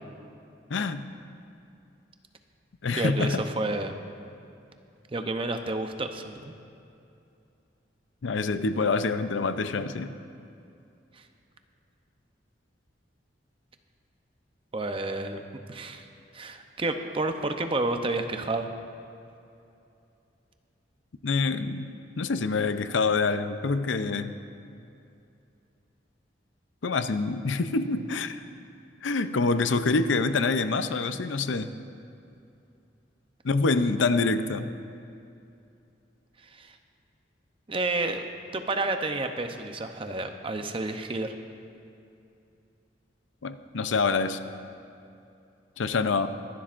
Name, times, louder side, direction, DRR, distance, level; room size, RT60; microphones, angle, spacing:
voice 1, 0.7-1.1 2.8-3.5 8.2-10.1 21.2-24.4 26.8-28.4 29.0-31.7 33.4-34.7 43.4-44.4 45.8-46.3, left 4 dB, 85° left, 11 dB, 0.6 m, -26 dB
voice 2, 2.9-3.9 5.1-6.5 11.2-11.3 14.7-15.4 15.7-16.1 16.3-18.7 36.5-36.8 37.7-38.3 38.5-41.3, right 2 dB, 30° right, 6 dB, 0.7 m, -30 dB
23.5 x 11.5 x 2.5 m, 2.6 s
head